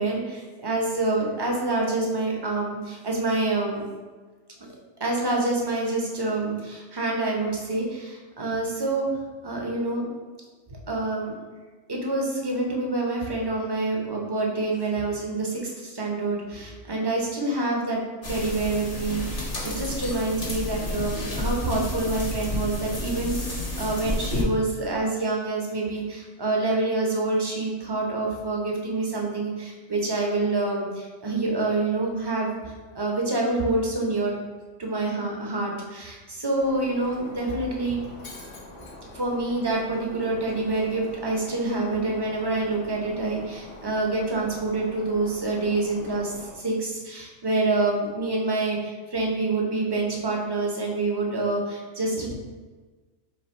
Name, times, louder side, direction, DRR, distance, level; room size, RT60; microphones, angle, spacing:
voice 1, 0.0-3.8 5.0-9.1 9.4-10.1 10.7-11.3 11.9-18.0 18.3-34.3 34.8-38.0 39.1-52.3, right 2 dB, 30° right, -1 dB, 0.5 m, -27 dB
sound 1, 18.2-24.4, left 2 dB, 45° left, 0.9 m, -31 dB
Shatter, 36.6-46.5, left 2 dB, 65° left, 1.4 m, -44 dB
3.3 x 3.3 x 4.3 m, 1.3 s
omnidirectional pair, 1.4 m